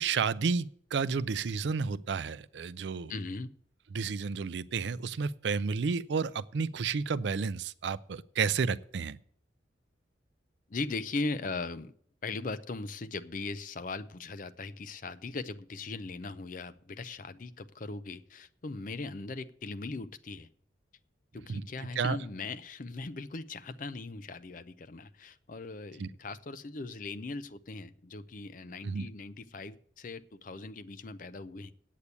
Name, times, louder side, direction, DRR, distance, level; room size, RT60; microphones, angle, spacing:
voice 1, 0.0-3.1 3.9-9.2 21.5-21.6 22.0-22.2 26.0-26.1 28.8-29.0, right 5 dB, 65° right, 0.4 m, -31 dB
voice 2, 3.1-3.5 10.7-11.9 12.2-20.5 21.3-31.7, left 3 dB, 45° left, 0.5 m, -39 dB
8.4 x 8.3 x 8.3 m
head